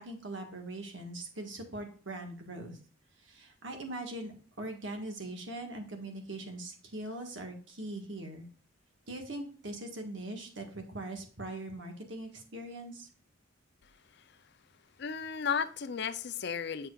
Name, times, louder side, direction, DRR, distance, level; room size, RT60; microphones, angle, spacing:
voice 1, 0.0-2.8 3.2-8.5 9.1-13.1, right 1 dB, 70° right, 1.6 m, -41 dB
voice 2, 15.0-16.9, left 6 dB, 55° left, 0.5 m, -34 dB
7.4 x 6.7 x 2.4 m
head